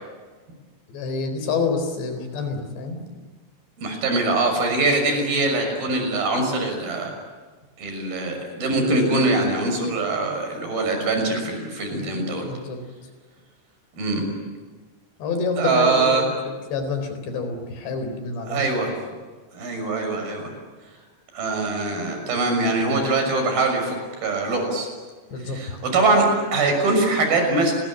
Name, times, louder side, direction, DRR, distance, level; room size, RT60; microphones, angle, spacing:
voice 1, 0.9-3.0 12.4-12.8 15.2-16.4 16.7-18.7 25.3-25.6, left 4 dB, 85° left, 7 dB, 6.2 m, -27 dB
voice 2, 3.8-7.1 7.8-12.5 14.0-14.3 15.6-16.2 18.5-18.9 19.5-20.5 21.3-24.9 25.5-27.7, right 2 dB, 60° right, 4 dB, 8.1 m, -22 dB
30.0 x 21.0 x 9.0 m, 1.4 s
omnidirectional pair, 4.8 m